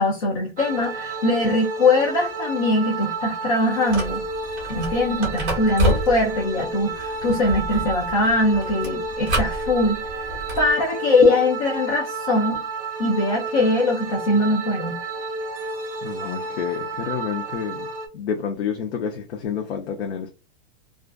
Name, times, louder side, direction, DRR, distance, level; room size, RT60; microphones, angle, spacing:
voice 1, 0.0-4.2 4.7-12.6 13.0-15.0, left 2 dB, 35° left, 0.5 m, -21 dB
sound 1, 0.6-18.1, right 3 dB, 60° right, 0.6 m, -31 dB
sound 2, 3.9-10.7, right 1 dB, 15° right, 0.7 m, -29 dB
voice 2, 16.0-17.9 18.1-20.3, left 7 dB, 85° left, 0.6 m, -29 dB
2.4 x 2.3 x 2.3 m
supercardioid pair, 175°, 32 cm